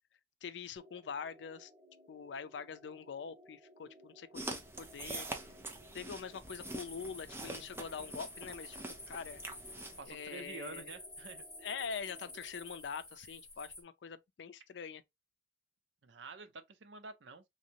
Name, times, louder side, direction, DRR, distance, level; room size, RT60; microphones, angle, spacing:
voice 1, 0.4-1.7 2.1-5.3 5.9-8.8 9.1-9.4 10.1-10.9 11.6-15.0, left 6 dB, 80° left, 0.4 m, -44 dB
sound 1, 0.8-12.6, equal, 30° right, 1.8 m, -60 dB
sound 2, 4.3-10.0, right 2 dB, 15° right, 0.6 m, -45 dB
sound 3, 6.5-13.8, left 2 dB, 5° left, 1.3 m, -51 dB
voice 2, 10.0-11.5 16.0-17.4, right 3 dB, 85° right, 0.6 m, -48 dB
3.2 x 2.6 x 2.8 m
head